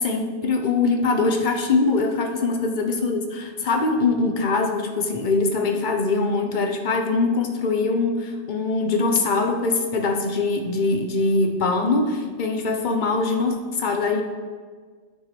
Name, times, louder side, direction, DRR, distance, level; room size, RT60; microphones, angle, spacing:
voice 1, 0.0-14.2, left 3 dB, 50° left, 5 dB, 1.0 m, -22 dB
9.2 x 5.7 x 6.0 m, 1.5 s
omnidirectional pair, 1.1 m